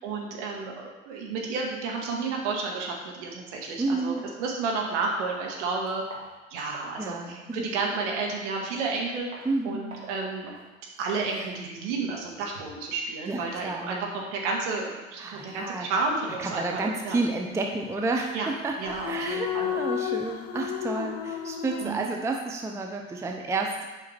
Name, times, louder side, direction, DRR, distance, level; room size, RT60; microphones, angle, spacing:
voice 1, 0.0-6.0 6.5-10.5 11.0-17.2 18.3-18.5 18.8-19.8 21.8-22.1, right 4 dB, 60° right, 0 dB, 1.9 m, -31 dB
sound 1, 3.6-3.7 4.2-4.3 4.8-5.1 5.5-7.0 7.4-7.5 8.1-8.4 8.7-9.0 9.3-9.5 9.9-10.1 10.5-10.7 11.0-12.9, right 2 dB, 90° right, 1.4 m, -48 dB
voice 2, 3.8-4.3 7.0-7.7 9.4-9.9 13.3-14.0 15.2-15.9 16.4-23.8, right 3 dB, 5° right, 2 dB, 0.6 m, -30 dB
sound 2, 16.6-17.3 18.8-21.9, left 9 dB, 40° left, 0.9 m, -32 dB
8.3 x 5.1 x 4.3 m, 1.2 s
figure-of-eight pair, 80°, 40 cm